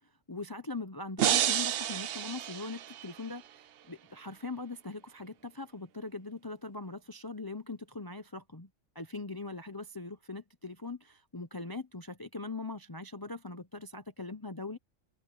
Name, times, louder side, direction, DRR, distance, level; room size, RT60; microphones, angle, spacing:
voice 1, 0.3-8.7 8.9-14.8, left 3 dB, 20° left, 0.8 m, -41 dB
sound 1, 1.2-3.3, right 11 dB, 60° right, 0.7 m, -30 dB
omnidirectional pair, 1.3 m